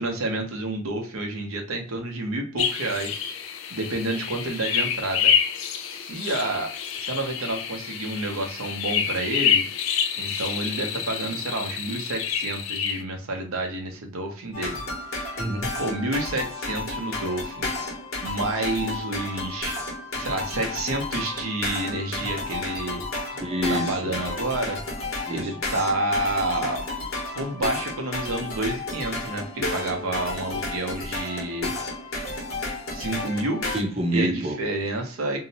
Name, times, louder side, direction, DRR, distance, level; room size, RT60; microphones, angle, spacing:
voice 1, 0.0-3.2 3.7-5.3 6.0-9.6 10.2-14.8 15.8-17.7 18.2-19.8 20.1-23.0 23.7-24.8 25.3-26.9 27.4-31.7 32.9-33.6 34.1-35.4, right 2 dB, 90° right, 2 dB, 0.7 m, -29 dB
sound 1, 2.6-13.0, left 8 dB, 70° left, 0.3 m, -27 dB
sound 2, 14.5-33.8, left 2 dB, 85° left, 1.0 m, -32 dB
voice 2, 15.4-15.7 23.4-24.2 25.3-25.5 33.7-34.6, equal, 30° right, 3 dB, 0.5 m, -27 dB
2.6 x 2.0 x 2.6 m, 0.43 s
head